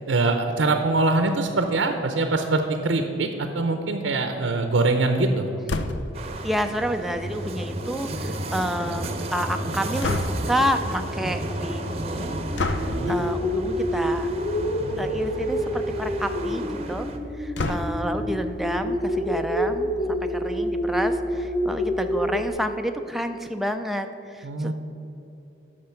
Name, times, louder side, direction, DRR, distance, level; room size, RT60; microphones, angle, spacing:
voice 1, 0.1-5.5 12.9-13.2 14.8-15.1 17.6-17.7 24.4-24.7, right 3 dB, 85° right, 6 dB, 0.7 m, -23 dB
sound 1, 5.7-6.2 10.0-10.6 12.6-13.0 14.2-14.5 14.9-15.0 15.2-15.3 17.6-18.2, left 2 dB, 70° left, 0.6 m, -28 dB
sound 2, 6.1-17.2, right 1 dB, 35° right, 0.7 m, -32 dB
voice 2, 6.4-12.4 12.8-14.3 15.0-17.1 17.4-24.7, equal, ahead, 5 dB, 0.4 m, -29 dB
sound 3, 12.0-22.5, equal, 20° left, 0.7 m, -28 dB
10.5 x 6.6 x 5.7 m, 3.0 s
head